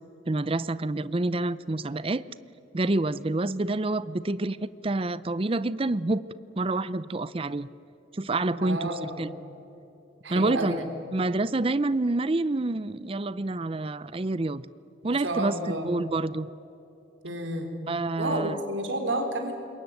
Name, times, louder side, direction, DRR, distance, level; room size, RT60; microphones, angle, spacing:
voice 1, 0.3-2.2 2.7-6.2 6.6-7.7 8.1-9.3 10.3-10.8 11.1-14.7 15.0-16.5 17.9-18.5, right 2 dB, 30° right, 17 dB, 0.5 m, -27 dB
voice 2, 8.6-9.2 10.2-10.8 15.0-15.9 17.2-17.7 18.2-19.5, right 1 dB, 80° right, 5 dB, 4.3 m, -30 dB
26.5 x 22.5 x 9.3 m, 2.9 s
head